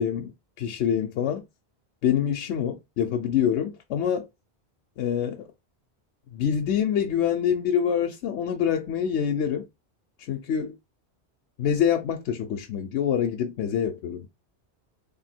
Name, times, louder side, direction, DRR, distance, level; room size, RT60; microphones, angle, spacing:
voice 1, 0.0-1.4 2.0-4.3 5.0-5.5 6.3-9.7 10.2-10.7 11.6-14.3, left 8 dB, 80° left, 0.9 m, -26 dB
3.5 x 2.6 x 4.2 m
omnidirectional pair, 1.1 m